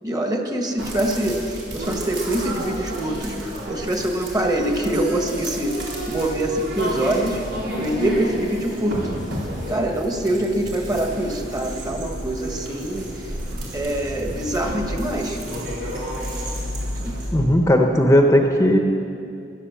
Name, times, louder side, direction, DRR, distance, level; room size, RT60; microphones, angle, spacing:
voice 1, 0.0-7.4 7.7-9.1 9.7-13.4 13.7-15.4 17.0-17.2, right 1 dB, 20° right, 3 dB, 1.5 m, -24 dB
sound 1, 0.8-17.3, equal, 90° right, 4.2 m, -31 dB
voice 2, 17.3-18.8, equal, 15° left, 3 dB, 0.9 m, -16 dB
15.5 x 12.5 x 7.3 m, 2.5 s
head